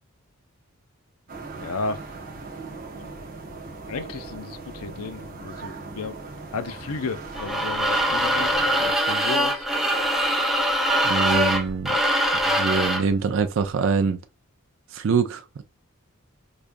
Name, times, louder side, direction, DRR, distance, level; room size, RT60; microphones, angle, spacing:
sound 1, 1.3-8.9, right 3 dB, 40° right, 0.8 m, -39 dB
voice 1, 1.6-2.0 2.9-3.1 3.8-6.2 6.5-9.7, left 4 dB, 85° left, 0.5 m, -33 dB
sound 2, 7.3-13.1, equal, ahead, 0.5 m, -23 dB
voice 2, 11.0-12.0 12.6-14.2 14.9-15.6, right 5 dB, 60° right, 0.4 m, -24 dB
4.9 x 2.3 x 2.5 m
head